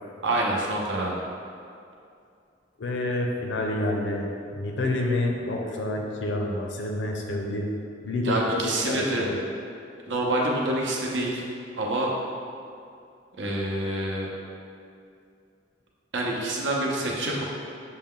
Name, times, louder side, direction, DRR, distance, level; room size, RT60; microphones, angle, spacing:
voice 1, 0.2-1.2 8.2-9.3 10.1-11.5 11.8-12.1 13.4-14.3 16.1-17.4, right 1 dB, 70° right, -2 dB, 0.7 m, -27 dB
voice 2, 2.8-4.3 4.5-7.7 8.0-9.4, left 1 dB, 70° left, 1 dB, 0.6 m, -28 dB
6.4 x 2.2 x 3.7 m, 2.5 s
head